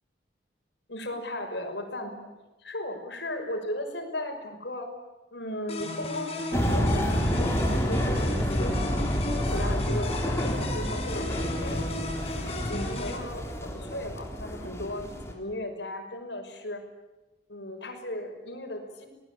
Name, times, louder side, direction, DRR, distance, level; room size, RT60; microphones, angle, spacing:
voice 1, 0.9-2.3 2.6-4.9 5.3-8.9 9.5-11.8 12.5-16.8 17.5-19.1, left 1 dB, 75° left, 3 dB, 6.1 m, -36 dB
sound 1, 5.7-13.2, left 2 dB, 35° left, 4.6 m, -35 dB
sound 2, 6.5-15.3, equal, 15° left, 3.5 m, -29 dB
28.0 x 20.0 x 8.8 m, 1.1 s
head